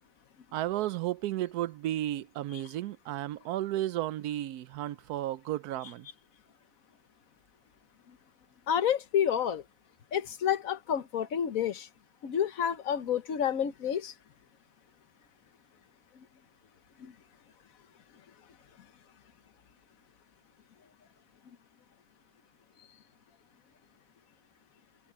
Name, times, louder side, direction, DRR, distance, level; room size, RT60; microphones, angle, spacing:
voice 1, 0.5-6.1, right 13 dB, 85° right, 1.1 m, -33 dB
voice 2, 8.7-9.6 10.1-11.9 12.2-14.1, left 9 dB, 65° left, 1.3 m, -29 dB
omnidirectional pair, 1.6 m